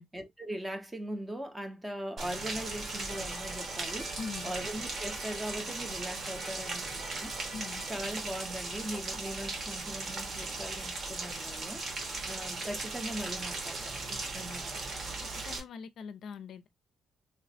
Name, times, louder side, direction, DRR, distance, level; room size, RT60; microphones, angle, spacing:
voice 1, 0.0-4.2 4.4-7.3 7.9-11.8 12.3-14.8, right 1 dB, 10° right, 0.6 m, -40 dB
Rain, 2.2-15.6, right 3 dB, 40° right, 0.9 m, -38 dB
Organ, 2.2-7.9, right 2 dB, 80° right, 2.1 m, -47 dB
voice 2, 4.2-4.5 7.5-7.8 15.2-16.7, left 5 dB, 60° left, 0.4 m, -42 dB
3.1 x 2.1 x 4.0 m
cardioid pair, 145°, 0 cm